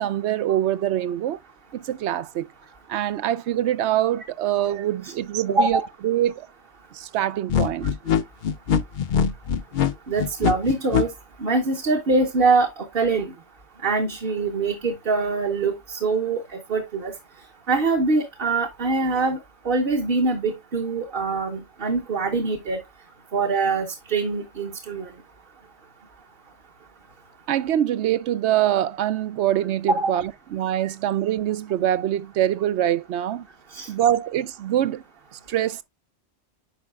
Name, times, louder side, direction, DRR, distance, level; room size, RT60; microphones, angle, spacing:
voice 1, 0.0-1.4 1.7-2.5 2.9-6.5 6.9-7.9 27.5-33.5 33.9-35.0 35.3-35.8, right 12 dB, 80° right, 0.9 m, -24 dB
voice 2, 5.5-5.9 10.1-11.1 11.4-13.3 13.8-16.4 16.7-17.1 17.7-19.4 19.6-22.8 23.3-25.1 30.0-30.2 33.7-33.9, right 3 dB, 55° right, 1.3 m, -23 dB
sound 1, 7.5-11.0, left 8 dB, 55° left, 0.7 m, -22 dB
9.7 x 5.3 x 2.3 m
omnidirectional pair, 1.1 m